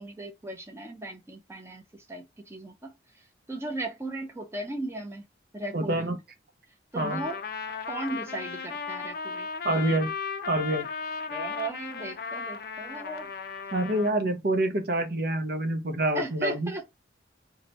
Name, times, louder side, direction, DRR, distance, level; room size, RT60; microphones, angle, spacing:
voice 1, 0.0-5.2 5.5-6.1 6.9-7.4 7.9-9.5 11.3-13.3 16.1-16.9, right 2 dB, 15° right, 0.6 m, -37 dB
voice 2, 5.7-6.2 6.9-7.2 9.6-10.1 10.5-10.9 13.7-16.7, right 1 dB, 55° right, 0.6 m, -27 dB
Trumpet, 7.0-14.2, left 5 dB, 50° left, 0.4 m, -36 dB
2.8 x 2.2 x 4.0 m
head